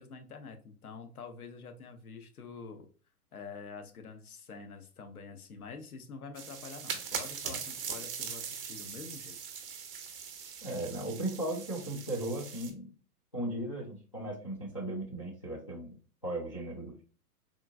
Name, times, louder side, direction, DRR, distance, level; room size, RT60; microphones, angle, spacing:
voice 1, 0.0-2.9 3.3-9.4, left 5 dB, 70° left, 7 dB, 0.7 m, -47 dB
sound 1, 6.4-12.7, right 7 dB, 35° right, 0.6 m, -41 dB
voice 2, 10.6-12.9 13.3-15.9 16.2-17.0, right 1 dB, 25° left, -7 dB, 0.3 m, -36 dB
3.7 x 2.4 x 2.3 m, 0.38 s
figure-of-eight pair, 115°, 47 cm